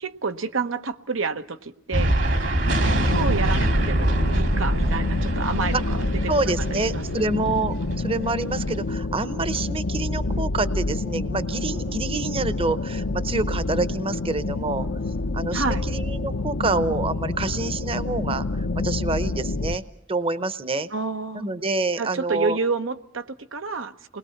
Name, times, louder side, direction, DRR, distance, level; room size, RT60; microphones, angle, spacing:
voice 1, 0.0-2.2 2.8-7.3 15.5-15.8 20.9-21.5 22.0-24.2, right 4 dB, 90° right, 8 dB, 1.1 m, -29 dB
sound 1, 1.9-8.9, right 1 dB, 65° right, 2.3 m, -24 dB
sound 2, 2.7-19.8, left 2 dB, 80° left, 0.8 m, -28 dB
voice 2, 6.3-14.9 15.3-19.8 20.1-20.9 21.3-22.6, right 3 dB, 30° right, 14 dB, 0.8 m, -27 dB
29.0 x 21.0 x 5.8 m, 0.74 s
head